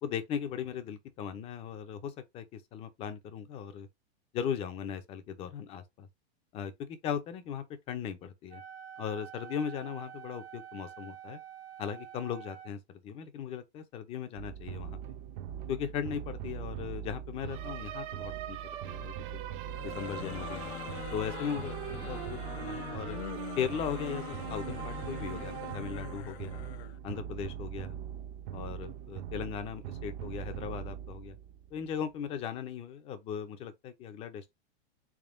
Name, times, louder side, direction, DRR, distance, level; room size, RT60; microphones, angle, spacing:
voice 1, 0.0-3.9 4.3-6.1 6.5-8.6 9.0-11.4 11.8-15.0 15.7-18.6 18.9-19.4 19.8-20.7 21.1-23.2 23.6-26.7 27.0-28.0 28.5-31.3 31.7-34.5, left 8 dB, 20° left, 0.4 m, -38 dB
Wind instrument woodwind instrument, 8.5-12.7, right 9 dB, 85° right, 1.5 m, -47 dB
sound 1, 14.4-32.0, right 10 dB, 50° right, 0.6 m, -40 dB
sound 2, 19.7-27.0, left 12 dB, 75° left, 0.5 m, -43 dB
3.7 x 3.5 x 2.5 m
supercardioid pair, 150°, 32 cm